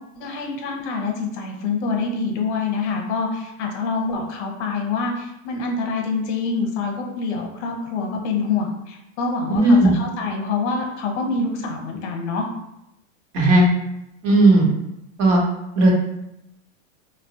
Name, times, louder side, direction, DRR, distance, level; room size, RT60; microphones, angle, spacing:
voice 1, 0.1-12.5, left 4 dB, 60° left, 2 dB, 0.7 m, -26 dB
voice 2, 9.5-9.9 13.3-13.7 14.2-14.7 15.2-15.4 15.8-15.9, right 1 dB, 65° right, -1 dB, 1.0 m, -14 dB
2.9 x 2.2 x 2.7 m, 0.85 s
supercardioid pair, 155°, 40 cm